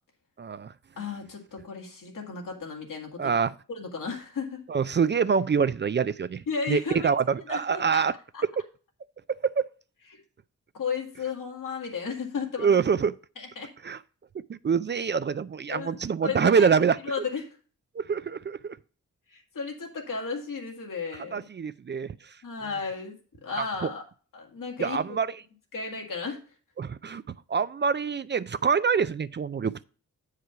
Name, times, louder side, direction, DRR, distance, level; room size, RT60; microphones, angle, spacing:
voice 1, 0.4-0.7 3.2-3.5 4.7-8.1 9.3-9.7 12.6-13.1 13.8-14.0 14.5-17.0 18.0-18.8 21.3-22.3 23.8-23.9 24.8-25.4 26.8-29.8, right 6 dB, 35° right, 0.4 m, -25 dB
voice 2, 1.0-3.3 3.7-4.6 6.5-7.1 7.5-8.1 8.3-8.4 10.1-10.2 10.7-12.8 13.4-13.7 15.7-16.7 17.0-17.5 19.3-21.4 22.4-23.2 23.4-24.0 24.3-25.2 25.7-26.4, left 5 dB, 80° left, 2.1 m, -34 dB
7.8 x 4.9 x 5.6 m
cardioid pair, 45°, 32 cm